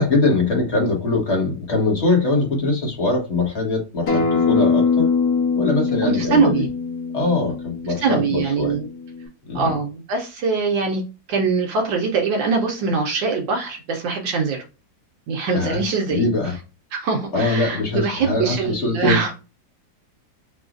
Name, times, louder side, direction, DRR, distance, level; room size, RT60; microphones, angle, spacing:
voice 1, 0.0-5.1 5.5-6.6 7.1-8.8 9.5-9.7 15.5-15.8 16.1-16.5 17.3-19.2, left 3 dB, 40° left, 1.4 m, -22 dB
Acoustic guitar, 4.1-9.3, left 5 dB, 60° left, 1.6 m, -22 dB
voice 2, 6.0-6.7 8.0-8.8 9.5-11.0 11.3-14.6 15.3-16.2 16.9-19.3, right 4 dB, 80° right, 1.5 m, -22 dB
5.9 x 2.4 x 2.5 m
omnidirectional pair, 2.0 m